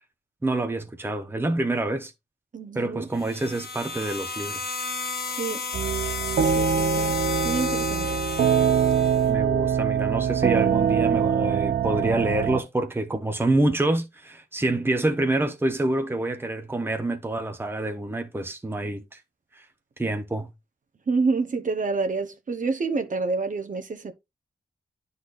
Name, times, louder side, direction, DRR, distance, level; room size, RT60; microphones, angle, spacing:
voice 1, 0.4-2.1 2.7-4.7 9.3-19.2 19.6-19.7 20.0-20.5, right 2 dB, 15° right, 0.9 m, -27 dB
voice 2, 2.5-3.1 5.3-5.6 6.4-7.1 7.4-8.2 21.1-24.1, right 4 dB, 50° right, 1.0 m, -28 dB
sound 1, 3.1-9.3, left 4 dB, 70° left, 1.2 m, -33 dB
sound 2, 5.7-12.6, right 7 dB, 70° right, 0.6 m, -23 dB
11.5 x 4.1 x 2.6 m
wide cardioid pair, 100°, 17 cm